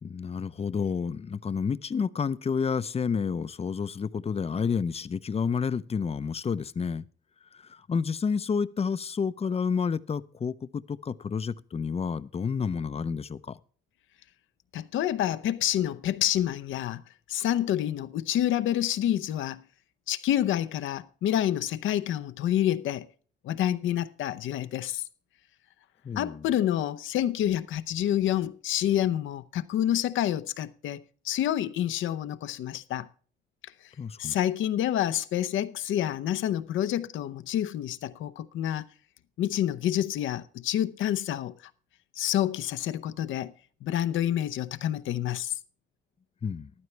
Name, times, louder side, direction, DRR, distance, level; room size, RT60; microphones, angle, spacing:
voice 1, 0.0-7.0 7.7-13.6 26.0-26.4 34.0-34.3 46.4-46.7, left 6 dB, 30° left, 0.6 m, -30 dB
voice 2, 14.7-17.0 17.3-19.6 20.1-23.1 23.4-25.0 26.2-33.1 34.2-38.8 39.4-41.5 42.2-43.5 43.8-45.5, left 11 dB, 80° left, 0.8 m, -28 dB
14.0 x 12.0 x 3.3 m
cardioid pair, 90°, 20 cm